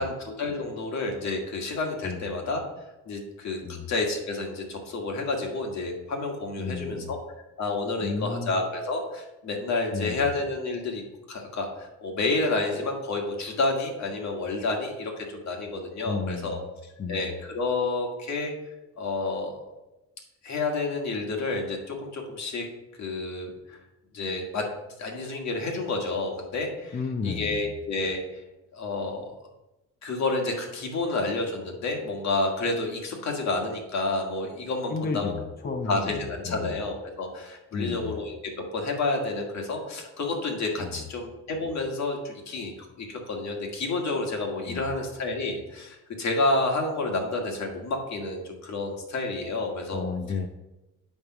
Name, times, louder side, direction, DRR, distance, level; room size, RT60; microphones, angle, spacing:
voice 1, 0.0-2.6 3.1-3.6 3.9-11.0 11.3-18.5 19.0-19.7 20.4-22.7 23.0-23.8 24.1-24.7 25.0-27.0 27.2-28.2 28.7-29.3 30.0-35.3 35.6-42.7 43.0-50.1, left 2 dB, 65° left, 1 dB, 1.9 m, -30 dB
voice 2, 6.6-7.1 8.0-8.6 9.9-10.3 16.1-16.7 17.0-17.3 26.9-27.8 34.9-36.8 37.7-38.2 40.8-41.0 44.7-44.9 49.9-50.5, left 5 dB, 30° left, 6 dB, 0.6 m, -33 dB
10.0 x 3.6 x 6.0 m, 0.99 s
cardioid pair, 90°, 30 cm